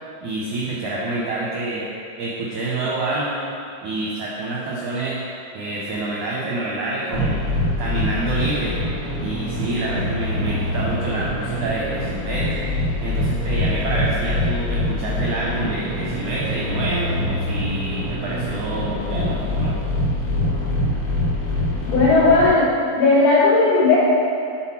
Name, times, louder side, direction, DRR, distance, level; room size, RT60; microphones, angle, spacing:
voice 1, 0.2-1.9 2.2-3.4 3.8-5.2 5.5-7.4 7.8-8.8 9.2-12.7 13.0-19.8, right 2 dB, 80° right, -5 dB, 1.7 m, -27 dB
sound 1, 7.1-22.5, left 1 dB, 55° left, 1.5 m, -24 dB
voice 2, 21.9-22.7 23.0-24.0, left 3 dB, 75° left, -8 dB, 3.7 m, -15 dB
7.9 x 4.1 x 5.8 m, 2.6 s
omnidirectional pair, 4.5 m